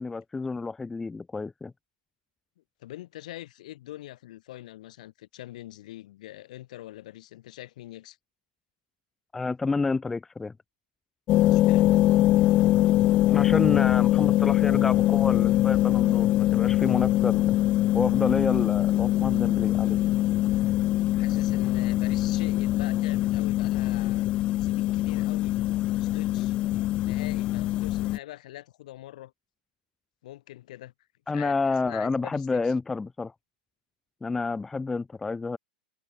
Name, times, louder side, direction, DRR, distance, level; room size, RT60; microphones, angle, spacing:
voice 1, 0.0-1.7 9.3-10.5 13.3-17.5 17.9-20.0 31.3-33.3 34.2-35.6, left 4 dB, 5° left, 1.0 m, -29 dB
voice 2, 2.6-8.2 11.5-12.0 21.1-24.3 24.6-25.5 25.9-26.5 27.0-29.3 30.2-30.9 31.3-32.7, left 15 dB, 55° left, 2.8 m, -43 dB
sound 1, 11.3-28.2, left 15 dB, 20° left, 0.3 m, -23 dB
supercardioid pair, 165°, 5 cm